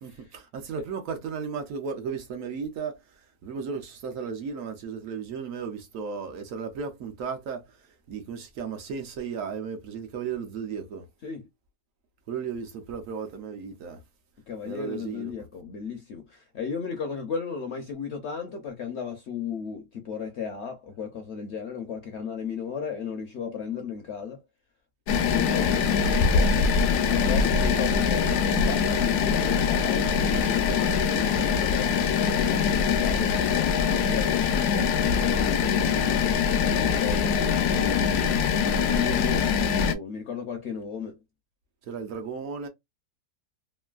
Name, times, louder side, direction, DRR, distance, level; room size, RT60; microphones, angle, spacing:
voice 1, 0.0-11.1 12.3-14.0 14.6-15.5 41.8-42.7, right 6 dB, 65° right, 0.9 m, -35 dB
voice 2, 14.5-24.4 25.2-26.7 27.2-33.7 34.1-36.1 36.7-41.2, left 6 dB, 65° left, 0.7 m, -35 dB
sound 1, 25.1-39.9, left 6 dB, 80° left, 1.1 m, -23 dB
3.0 x 2.5 x 2.3 m
omnidirectional pair, 1.7 m